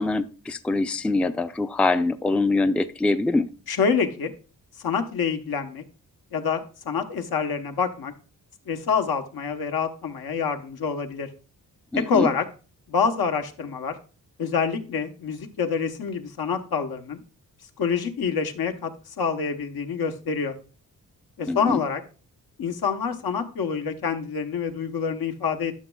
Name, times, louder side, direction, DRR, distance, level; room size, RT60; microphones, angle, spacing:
voice 1, 0.0-3.5 11.9-12.3 21.5-21.8, left 2 dB, 5° left, 11 dB, 0.4 m, -24 dB
voice 2, 3.7-4.3 4.8-5.8 6.3-8.1 8.7-11.3 11.9-12.4 12.9-14.0 14.4-17.2 17.8-20.5 21.4-22.0 22.6-25.7, left 6 dB, 75° left, 6 dB, 1.0 m, -26 dB
11.5 x 6.2 x 2.3 m, 0.35 s
cardioid pair, 80°, 37 cm